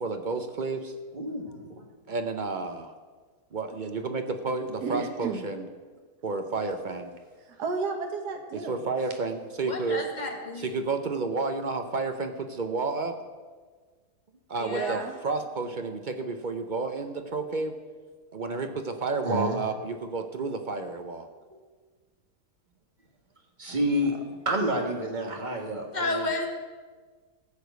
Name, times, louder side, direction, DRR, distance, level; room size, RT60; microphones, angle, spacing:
voice 1, 0.0-0.9 2.1-2.9 3.5-5.7 6.2-7.1 8.5-10.0 10.6-13.2 14.5-17.7 18.3-21.3, right 3 dB, 60° right, 6 dB, 0.5 m, -31 dB
voice 2, 1.1-1.9 19.2-19.6 23.6-24.1 24.5-26.3, equal, 30° right, 1 dB, 1.7 m, -29 dB
voice 3, 4.8-5.5 7.4-8.8 14.7-15.1 23.7-24.2, right 4 dB, 75° right, 4 dB, 1.7 m, -33 dB
voice 4, 9.6-10.8 14.6-15.0 25.9-26.5, left 2 dB, 30° left, 2 dB, 1.5 m, -31 dB
15.0 x 5.0 x 8.0 m, 1.4 s
omnidirectional pair, 1.8 m